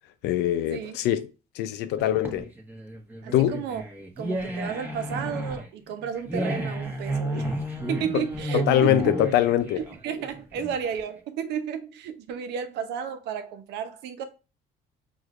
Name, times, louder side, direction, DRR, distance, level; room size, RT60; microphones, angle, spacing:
voice 1, 0.2-1.3 1.6-2.5 3.3-3.6 8.1-8.2 8.5-9.8, left 12 dB, 80° left, 0.5 m, -23 dB
sound 1, 2.0-11.0, right 1 dB, 10° right, 1.2 m, -32 dB
voice 2, 3.2-3.8 4.2-7.5 7.9-9.1 9.8-14.2, right 8 dB, 80° right, 0.8 m, -32 dB
4.8 x 2.6 x 3.1 m
cardioid pair, 110°, 17 cm